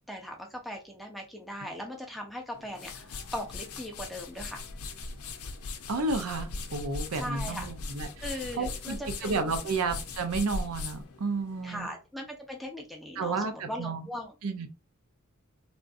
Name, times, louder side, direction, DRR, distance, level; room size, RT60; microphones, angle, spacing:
voice 1, 0.1-4.6 7.1-7.7 8.2-9.7 11.6-14.3, equal, ahead, 1 dB, 0.7 m, -39 dB
sound 1, 2.5-11.9, left 3 dB, 90° left, 0.6 m, -39 dB
voice 2, 5.9-8.1 8.6-11.9 13.2-14.0 14.4-14.8, right 3 dB, 90° right, 8 dB, 0.6 m, -31 dB
3.5 x 2.6 x 2.5 m, 0.30 s
head